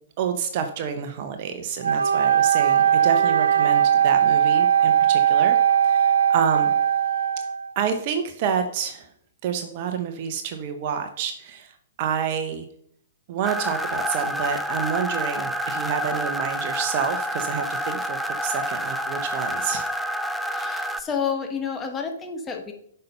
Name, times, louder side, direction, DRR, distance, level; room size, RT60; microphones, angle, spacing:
voice 1, 0.2-5.6 5.8-6.7 7.7-9.1 9.4-12.7 13.3-19.9, right 7 dB, 45° right, 7 dB, 0.9 m, -28 dB
Wind instrument woodwind instrument, 1.8-7.7, right 9 dB, 75° right, 0.4 m, -19 dB
sound 1, 13.4-21.0, equal, 5° right, 0.6 m, -28 dB
voice 2, 20.5-22.7, left 6 dB, 20° left, 4 dB, 1.2 m, -29 dB
7.7 x 5.6 x 5.4 m, 0.69 s
figure-of-eight pair, 115°, 0 cm